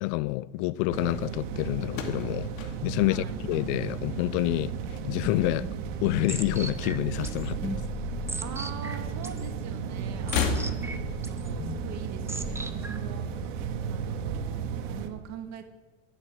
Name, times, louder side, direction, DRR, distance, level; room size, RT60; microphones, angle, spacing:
voice 1, 0.0-4.7 5.0-5.7 6.0-7.8, left 19 dB, 55° left, 0.5 m, -28 dB
sound 1, 0.9-15.1, right 6 dB, 65° right, 1.7 m, -34 dB
sound 2, 1.9-4.2 4.5-5.1 6.2-7.2 7.4-7.6 8.7-8.8 10.2-11.2, left 6 dB, 75° left, 2.5 m, -34 dB
voice 2, 3.0-3.4 8.4-13.3 13.9-15.6, right 8 dB, 45° right, 2.1 m, -42 dB
sound 3, 5.3-13.2, equal, 5° right, 1.1 m, -39 dB
14.0 x 8.0 x 7.7 m
supercardioid pair, 115°, 39 cm